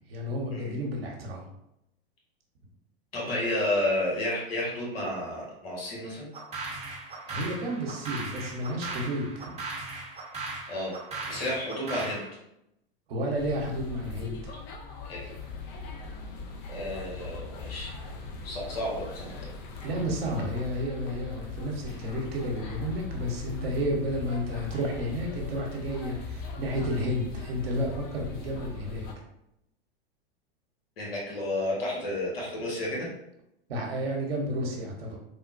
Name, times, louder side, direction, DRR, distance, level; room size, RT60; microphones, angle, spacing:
voice 1, 0.1-1.5 7.3-9.5 13.1-14.5 19.8-29.1 33.7-35.2, equal, 75° right, 0 dB, 0.9 m, -31 dB
voice 2, 3.1-6.3 10.7-10.9 11.3-12.2 15.1-15.2 16.7-17.9 18.4-19.3 31.0-33.1, left 1 dB, 75° left, -4 dB, 1.5 m, -31 dB
sound 1, 6.3-12.3, right 3 dB, 20° right, 0.8 m, -38 dB
sound 2, 13.4-29.1, left 4 dB, 35° left, 0.5 m, -40 dB
3.5 x 2.2 x 2.5 m, 0.82 s
hypercardioid pair, 100°, 30 cm